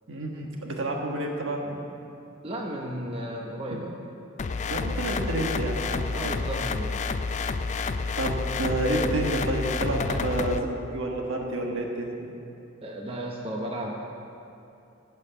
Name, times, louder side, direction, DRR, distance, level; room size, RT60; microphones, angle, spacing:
voice 1, 0.1-1.8 3.7-3.8 4.7-6.4 8.2-10.6 10.9-12.4, right 1 dB, 65° right, 1 dB, 1.4 m, -29 dB
voice 2, 2.4-3.9 6.1-6.9 9.8-10.2 12.8-14.0, right 1 dB, 30° right, -1 dB, 0.9 m, -34 dB
sound 1, 4.4-10.6, left 4 dB, 35° left, 0.3 m, -29 dB
14.0 x 5.4 x 6.9 m, 2.7 s
head